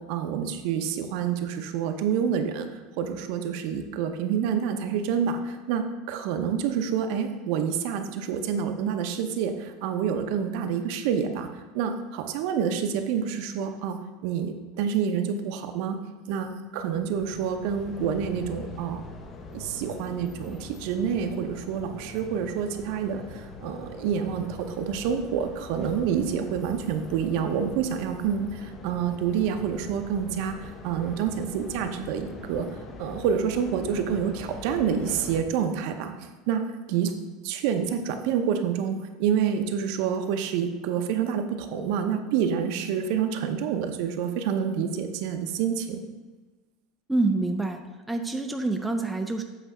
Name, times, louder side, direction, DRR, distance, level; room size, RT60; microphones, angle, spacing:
voice 1, 0.1-2.7 3.0-14.0 14.2-16.0 16.3-19.0 19.5-32.7 33.0-36.1 36.5-36.6 36.9-37.1 37.4-46.0, right 7 dB, 60° right, 6 dB, 0.8 m, -28 dB
sound 1, 16.8-35.4, left 3 dB, 25° left, 0.7 m, -43 dB
voice 2, 47.1-49.4, right 2 dB, 5° right, 4 dB, 0.4 m, -27 dB
8.0 x 3.3 x 6.0 m, 1.3 s
supercardioid pair, 155°, 0 cm